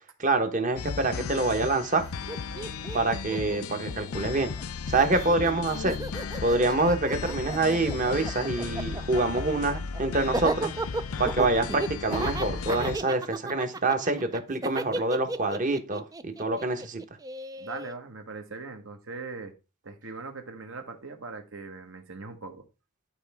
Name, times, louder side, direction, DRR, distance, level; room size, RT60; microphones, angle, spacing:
voice 1, 0.2-2.0 2.9-4.5 4.9-6.0 6.4-10.7 11.2-17.0, right 2 dB, 40° right, 7 dB, 1.2 m, -26 dB
sound 1, 0.8-13.0, left 5 dB, 90° left, 0.5 m, -35 dB
Laughter, 2.0-2.1 2.3-4.6 4.9-17.9, right 2 dB, 15° right, 0.3 m, -34 dB
voice 2, 17.6-19.5 19.8-22.6, right 3 dB, 65° right, 5 dB, 1.5 m, -40 dB
11.5 x 4.4 x 3.5 m, 0.31 s
head